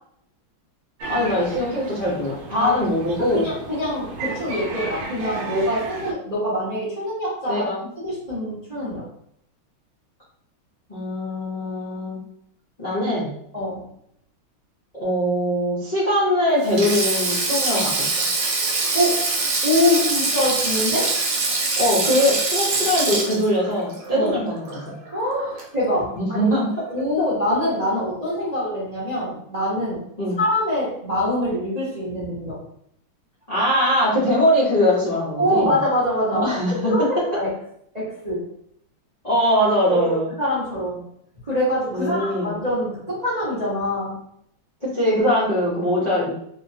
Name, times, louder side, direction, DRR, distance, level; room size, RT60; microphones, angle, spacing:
sound 1, 1.0-6.1, right 3 dB, 80° right, 1.5 m, -34 dB
voice 1, 1.1-3.5 7.5-7.8 10.9-12.2 12.8-13.3 14.9-18.3 21.8-24.9 26.1-26.7 27.2-27.3 30.2-30.4 33.5-35.8 36.3-36.9 39.2-40.3 41.9-42.5 44.8-46.3, equal, 45° left, -10 dB, 0.5 m, -22 dB
voice 2, 3.2-7.7 8.0-9.1 13.5-13.8 18.9-19.2 19.6-21.1 24.1-24.4 25.1-26.5 26.9-30.0 30.4-32.6 35.4-37.5 37.9-38.4 39.9-41.0 41.4-44.2, left 1 dB, 35° right, -8 dB, 0.6 m, -24 dB
Sink (filling or washing), 16.6-25.1 25.4-25.6 26.8-27.0, right 3 dB, 60° right, 1.1 m, -24 dB
3.0 x 2.9 x 2.7 m, 0.70 s
omnidirectional pair, 2.3 m